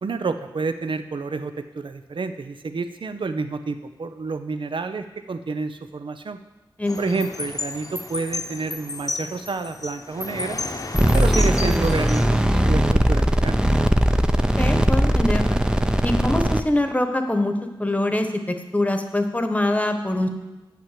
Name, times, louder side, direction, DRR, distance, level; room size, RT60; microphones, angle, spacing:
voice 1, 0.0-6.4 7.0-10.6 11.1-13.7, right 4 dB, 70° right, 9 dB, 0.6 m, -29 dB
voice 2, 6.8-7.1 14.6-15.6 16.0-17.5 17.8-20.3, left 1 dB, 15° left, 6 dB, 1.1 m, -24 dB
sound 1, 6.9-12.3, left 3 dB, 40° left, 0.9 m, -32 dB
sound 2, 10.9-16.6, right 1 dB, 10° right, 0.6 m, -19 dB
8.4 x 5.9 x 7.6 m, 1.1 s
cardioid pair, 55°, 9 cm